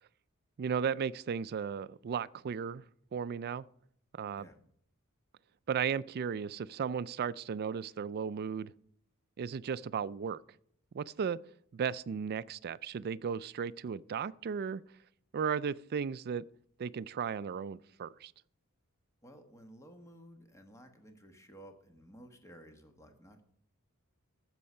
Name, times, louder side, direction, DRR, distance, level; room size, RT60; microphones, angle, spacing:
voice 1, 0.6-2.8 3.1-3.7 4.1-4.4 5.7-8.7 9.4-10.4 10.9-11.4 11.7-14.8 15.3-16.4 16.8-18.3, right 7 dB, 45° right, 0.3 m, -35 dB
voice 2, 19.2-23.4, equal, 15° left, 1.1 m, -55 dB
14.5 x 6.3 x 5.4 m
head